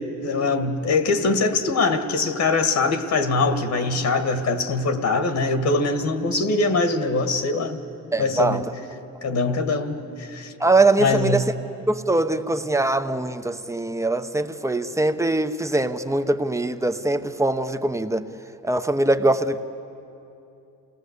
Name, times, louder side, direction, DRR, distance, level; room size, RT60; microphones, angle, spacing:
voice 1, 0.0-7.8 8.2-8.6 9.2-10.5 11.0-11.5, left 3 dB, 65° left, 7 dB, 1.8 m, -23 dB
voice 2, 8.1-8.6 10.6-11.4 11.9-18.2 18.6-19.6, right 2 dB, 10° right, 9 dB, 0.9 m, -22 dB
28.0 x 18.5 x 8.2 m, 2.8 s
cardioid pair, 90°, 30 cm